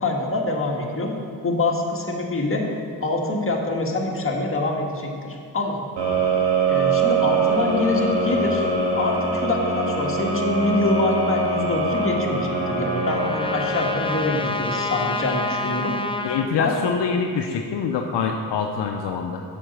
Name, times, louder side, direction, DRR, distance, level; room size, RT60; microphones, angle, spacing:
voice 1, 0.0-1.1 1.4-2.7 3.0-5.8 6.7-8.7 9.0-15.9 16.6-16.7, left 2 dB, 30° left, 0 dB, 1.6 m, -25 dB
sound 1, 6.0-14.9, right 3 dB, 70° right, 1.6 m, -23 dB
Trumpet, 11.9-16.5, left 2 dB, 10° left, 0.7 m, -29 dB
voice 2, 16.2-19.4, left 6 dB, 70° left, 3 dB, 0.7 m, -25 dB
7.4 x 5.3 x 6.6 m, 2.3 s
supercardioid pair, 50°, 44 cm